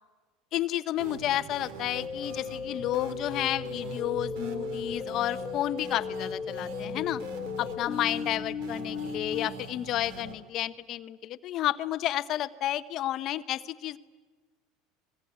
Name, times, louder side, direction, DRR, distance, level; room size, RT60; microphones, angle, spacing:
voice 1, 0.5-7.2 7.6-14.0, left 13 dB, 50° left, 12 dB, 0.8 m, -31 dB
sound 1, 1.0-10.3, right 3 dB, 70° right, 3.0 m, -43 dB
sound 2, 2.0-9.5, left 6 dB, 35° left, 1.3 m, -36 dB
24.5 x 21.5 x 9.9 m, 1.4 s
hypercardioid pair, 90°, 0 cm